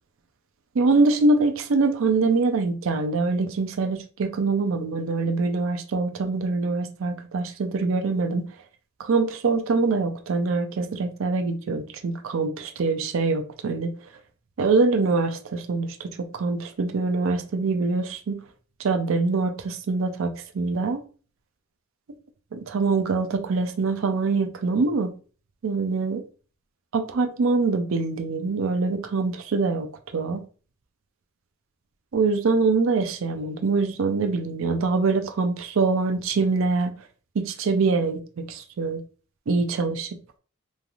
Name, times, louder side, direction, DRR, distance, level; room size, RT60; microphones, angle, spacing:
voice 1, 0.8-8.4 9.0-13.9 14.6-18.4 18.8-21.0 22.5-25.1 25.6-26.2 26.9-30.4 32.1-36.9 37.4-39.0 39.5-40.1, right 3 dB, 70° right, 0.4 m, -24 dB
3.2 x 2.4 x 2.4 m
head